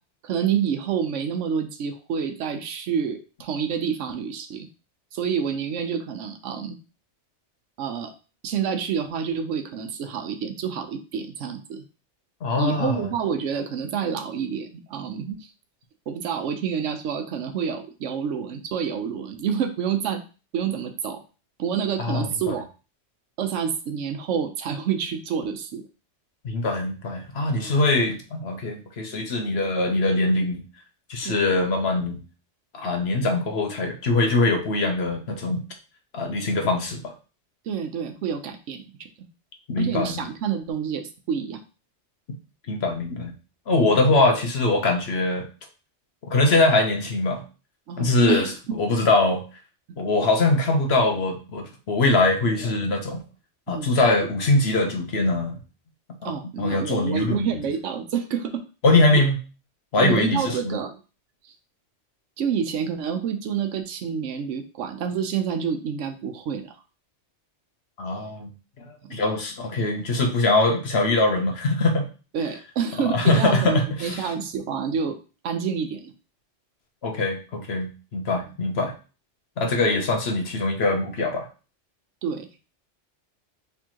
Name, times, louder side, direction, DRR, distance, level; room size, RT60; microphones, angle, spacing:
voice 1, 0.2-4.7 5.1-6.8 7.8-8.1 8.4-11.8 12.6-15.5 16.1-20.2 20.5-21.2 21.6-22.6 23.4-25.8 31.2-31.4 37.7-39.1 39.8-41.6 47.9-48.8 53.7-54.0 56.2-58.6 60.0-61.0 61.4-61.5 62.4-66.8 69.1-69.2 72.3-75.2 75.4-76.1 82.2-82.5, right 7 dB, 85° right, 8 dB, 1.0 m, -28 dB
voice 2, 12.4-13.1 22.0-22.5 26.4-30.6 31.1-32.2 32.7-35.6 36.1-37.1 39.7-40.3 42.7-43.3 43.7-45.5 46.2-47.4 48.0-48.5 48.8-49.4 50.0-53.2 53.7-55.6 56.2-57.5 58.8-59.4 59.9-60.8 68.0-68.5 68.8-72.1 73.1-74.3 77.0-78.9 79.6-81.5, left 2 dB, 60° left, 3 dB, 1.1 m, -22 dB
4.4 x 3.5 x 2.9 m, 0.34 s
omnidirectional pair, 1.2 m